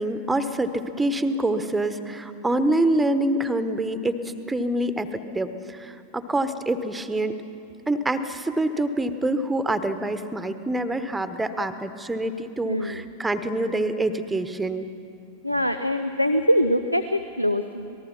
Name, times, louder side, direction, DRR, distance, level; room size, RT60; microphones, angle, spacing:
voice 1, 0.0-4.2 4.5-7.4 7.9-14.9, right 1 dB, 10° right, 11 dB, 1.1 m, -26 dB
voice 2, 12.7-13.0 15.4-18.0, equal, 90° left, 9 dB, 0.6 m, -23 dB
26.0 x 19.0 x 5.9 m, 2.6 s
figure-of-eight pair, 90°, 0 cm